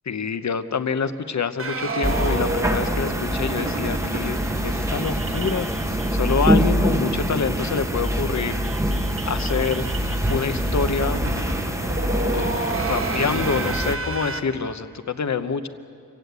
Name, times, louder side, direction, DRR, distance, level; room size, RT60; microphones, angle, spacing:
voice 1, 0.1-8.9 9.2-9.9 10.3-11.3 12.3-15.7, left 5 dB, 50° left, 11 dB, 0.9 m, -27 dB
sound 1, 1.6-6.7 7.0-7.1 7.3-7.4 7.7-14.4, right 3 dB, 35° right, 1.1 m, -32 dB
sound 2, 2.0-14.0, equal, 10° right, 1.0 m, -24 dB
26.5 x 16.5 x 8.1 m, 2.5 s
wide cardioid pair, 140°, 36 cm